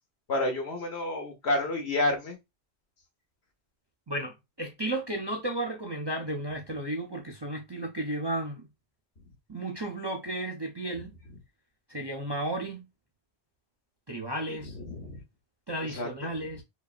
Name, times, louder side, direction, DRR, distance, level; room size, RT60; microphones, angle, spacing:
voice 1, 0.3-2.4 14.5-15.2 15.9-16.3, left 2 dB, 70° left, 1.4 m, -30 dB
voice 2, 4.1-8.7 9.5-11.2 11.9-12.9 14.1-14.8 15.7-16.6, right 1 dB, 30° right, 0.5 m, -33 dB
5.2 x 2.4 x 2.5 m
omnidirectional pair, 1.1 m